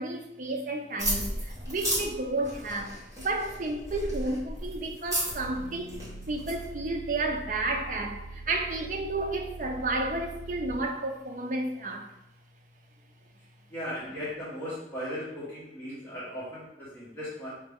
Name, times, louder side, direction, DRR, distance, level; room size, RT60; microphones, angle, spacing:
voice 1, 0.0-6.0 6.3-12.1, right 2 dB, 45° right, 0.5 m, -32 dB
sound 1, 1.0-6.7, equal, 20° right, 1.3 m, -34 dB
sound 2, 5.3-10.9, right 2 dB, 80° left, 0.5 m, -43 dB
voice 2, 13.7-17.5, equal, 10° left, 1.2 m, -37 dB
4.8 x 3.2 x 3.5 m
head